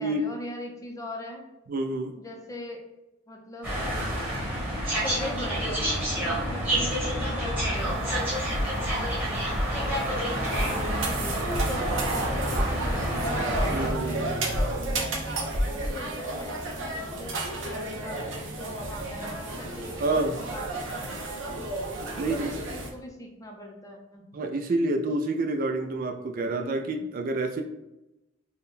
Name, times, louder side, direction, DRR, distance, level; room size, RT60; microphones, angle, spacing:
voice 1, 0.0-1.4 2.2-2.8 3.3-3.7 4.8-11.2 11.7-14.2 14.8-21.6 22.2-24.2, equal, 15° left, 2 dB, 0.5 m, -41 dB
voice 2, 1.7-2.2 13.7-14.2 20.0-20.4 22.2-22.5 24.3-27.6, right 2 dB, 45° right, 6 dB, 0.3 m, -28 dB
sound 1, 3.6-13.9, equal, 10° right, 1.0 m, -29 dB
sound 2, 7.7-15.9, equal, 30° right, 0.7 m, -33 dB
sound 3, 9.9-22.9, right 2 dB, 75° right, 0.7 m, -32 dB
3.6 x 2.2 x 4.0 m, 0.96 s
head